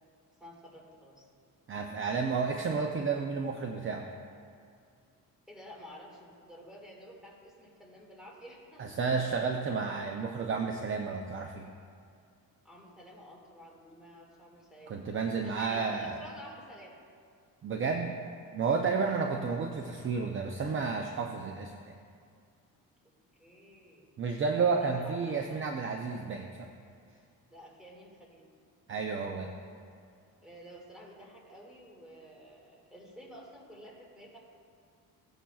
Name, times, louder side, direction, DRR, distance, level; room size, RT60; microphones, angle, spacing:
voice 1, 0.4-1.3 5.5-9.1 12.6-15.0 15.3-17.0 18.6-19.3 23.4-24.1 24.8-25.8 27.5-28.5 30.4-34.4, equal, ahead, -3 dB, 2.0 m, -51 dB
voice 2, 1.7-4.0 8.8-11.7 14.9-16.1 17.6-18.2 18.5-21.9 24.2-26.7 28.9-29.5, right 5 dB, 35° right, 3 dB, 0.5 m, -31 dB
16.5 x 8.6 x 2.3 m, 2.3 s
cardioid pair, 150°, 36 cm